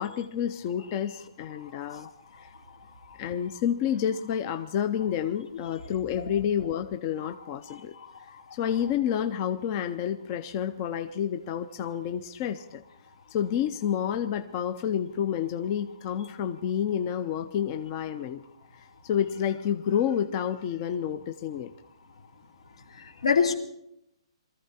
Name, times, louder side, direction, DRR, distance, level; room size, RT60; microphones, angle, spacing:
voice 1, 0.0-2.1 3.2-7.9 8.5-12.8 13.3-18.4 18.8-21.7, left 9 dB, 30° left, 9 dB, 0.6 m, -29 dB
voice 2, 7.7-8.3 23.0-23.5, left 6 dB, 80° left, 4 dB, 2.6 m, -27 dB
23.0 x 14.5 x 4.3 m, 0.78 s
hypercardioid pair, 160°, 3 cm